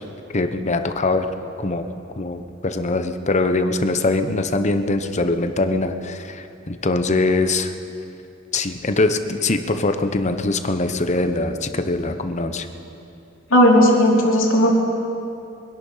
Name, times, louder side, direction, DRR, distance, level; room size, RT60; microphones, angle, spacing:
voice 1, 0.3-1.3 1.6-1.9 2.2-7.7 8.5-12.7, left 2 dB, 35° left, 8 dB, 0.9 m, -22 dB
voice 2, 13.5-14.7, equal, 70° left, -1 dB, 2.7 m, -15 dB
23.0 x 10.5 x 5.6 m, 2.7 s
head